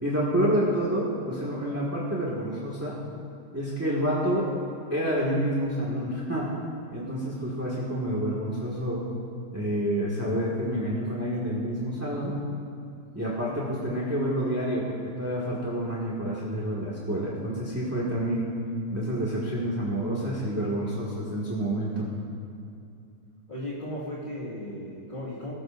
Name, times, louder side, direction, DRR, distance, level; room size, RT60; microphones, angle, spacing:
voice 1, 0.0-2.9 3.5-4.5 4.9-6.5 6.9-9.0 9.5-12.4 13.1-18.5 18.9-22.0, right 1 dB, 10° right, -6 dB, 1.8 m, -28 dB
voice 2, 23.5-25.5, left 1 dB, 30° left, -9 dB, 2.1 m, -36 dB
20.5 x 14.0 x 2.6 m, 2.6 s
omnidirectional pair, 1.6 m